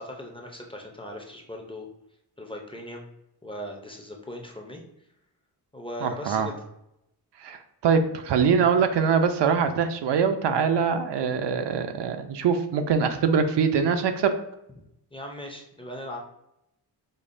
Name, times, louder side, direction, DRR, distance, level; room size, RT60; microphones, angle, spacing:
voice 1, 0.0-1.9 2.4-3.1 3.4-4.8 5.7-6.5 14.8-14.9 15.1-16.2, left 1 dB, 15° left, 0 dB, 0.4 m, -38 dB
voice 2, 6.0-6.5 7.4-14.3, right 6 dB, 80° right, 8 dB, 0.5 m, -23 dB
5.2 x 2.1 x 2.5 m, 0.82 s
wide cardioid pair, 135°, 41 cm